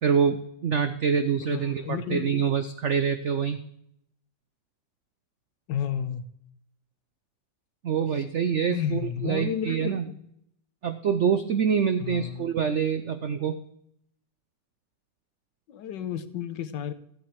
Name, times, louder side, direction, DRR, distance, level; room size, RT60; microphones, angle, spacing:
voice 1, 0.0-3.6 7.8-10.1 10.8-13.6, right 7 dB, 85° right, 10 dB, 0.6 m, -26 dB
voice 2, 1.4-2.4 5.7-6.3 8.2-8.3 8.7-10.2 12.0-12.5 15.7-16.9, left 9 dB, 75° left, 12 dB, 1.4 m, -32 dB
14.0 x 7.8 x 4.6 m, 0.71 s
omnidirectional pair, 2.0 m